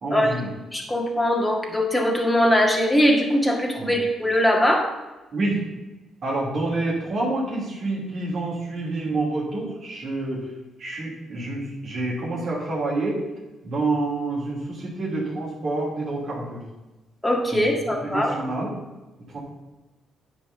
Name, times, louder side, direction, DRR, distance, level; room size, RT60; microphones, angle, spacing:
voice 1, 0.0-0.5 3.8-3.9 5.3-5.6 6.2-10.4 10.8-13.2 13.6-16.6 17.5-17.6 18.0-18.7 19.3-19.4, right 2 dB, 50° right, -5 dB, 2.9 m, -27 dB
voice 2, 0.7-4.9 17.2-18.4, equal, 5° left, -1 dB, 1.7 m, -21 dB
9.3 x 4.3 x 6.9 m, 1.1 s
cardioid pair, 90°, 0 cm